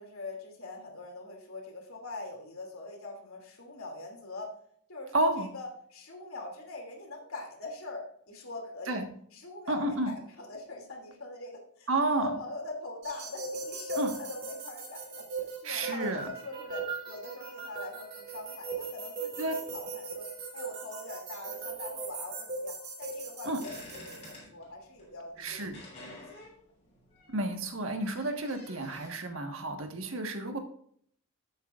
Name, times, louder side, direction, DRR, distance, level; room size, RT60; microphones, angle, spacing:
voice 1, 0.0-4.5 4.9-9.0 9.3-11.9 12.2-15.2 15.6-20.3 20.5-25.6 26.0-26.2, left 2 dB, 75° left, 2 dB, 2.7 m, -43 dB
voice 2, 5.1-5.5 8.9-9.1 9.7-10.1 11.9-12.3 14.0-14.1 15.6-16.3 19.4-19.5 23.4-23.6 25.4-25.8 27.3-30.6, right 2 dB, 65° right, 4 dB, 1.5 m, -31 dB
sound 1, 13.0-24.3, right 3 dB, 45° right, 3.2 m, -39 dB
sound 2, 23.6-29.1, left 1 dB, 30° left, 4.0 m, -50 dB
13.0 x 8.2 x 2.5 m, 0.63 s
head